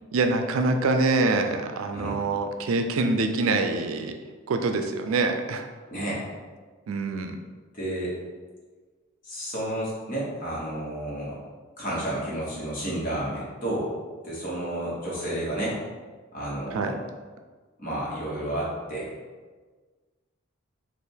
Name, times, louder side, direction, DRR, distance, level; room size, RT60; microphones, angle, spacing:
voice 1, 0.1-4.1 4.5-5.7 6.9-7.4 16.7-16.9, right 3 dB, 80° right, 6 dB, 0.4 m, -25 dB
voice 2, 5.9-6.3 7.7-8.1 9.2-11.4 11.8-13.9 14.2-15.8 16.3-17.0 17.8-19.1, right 1 dB, 40° left, -6 dB, 1.2 m, -31 dB
3.4 x 2.4 x 4.4 m, 1.4 s
head